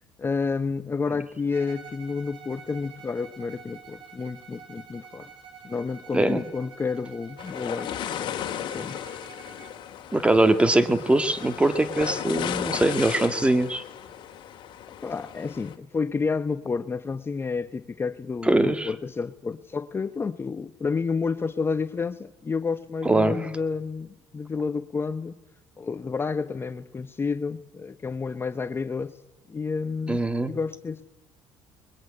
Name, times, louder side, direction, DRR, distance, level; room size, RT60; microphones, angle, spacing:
voice 1, 0.2-5.3 5.6-7.9 8.6-9.0 15.0-25.3 25.8-29.2 29.5-30.2 30.5-31.0, left 4 dB, 25° left, 11 dB, 0.9 m, -30 dB
Bowed string instrument, 1.5-9.8, right 6 dB, 55° right, 5.7 m, -47 dB
sound 1, 7.4-15.7, left 10 dB, 60° left, 2.2 m, -35 dB
voice 2, 10.1-13.8 18.4-18.9 23.0-23.5 30.1-30.5, right 2 dB, 10° right, 12 dB, 1.7 m, -22 dB
21.5 x 21.5 x 9.8 m, 0.96 s
cardioid pair, 100°, 9 cm